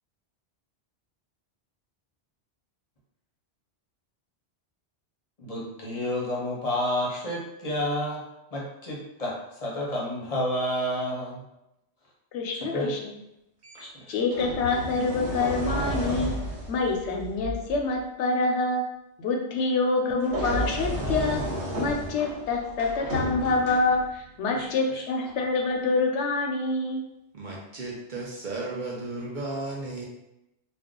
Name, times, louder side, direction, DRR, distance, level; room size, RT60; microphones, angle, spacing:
voice 1, 5.4-8.2 8.5-11.4 12.5-12.9 13.8-14.1 24.5-25.0, left 1 dB, 40° left, -4 dB, 0.7 m, -30 dB
voice 2, 12.3-13.1 14.1-16.3 16.7-18.8 19.2-21.4 21.8-27.0, left 3 dB, 85° left, 1 dB, 0.9 m, -26 dB
sound 1, 13.6-13.8 14.3-17.8 20.2-24.2 25.3-25.4, equal, 80° right, 1.0 m, -32 dB
voice 3, 27.3-30.1, right 2 dB, 55° right, -3 dB, 0.6 m, -34 dB
2.4 x 2.2 x 3.6 m, 0.88 s
omnidirectional pair, 1.1 m